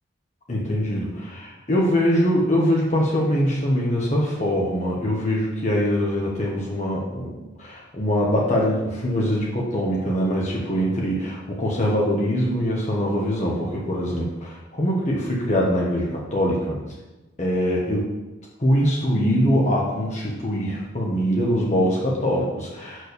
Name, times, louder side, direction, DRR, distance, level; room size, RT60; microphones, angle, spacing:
voice 1, 0.5-16.8 17.4-18.1 18.6-23.1, equal, 40° left, -4 dB, 1.2 m, -23 dB
6.3 x 4.7 x 6.6 m, 1.1 s
head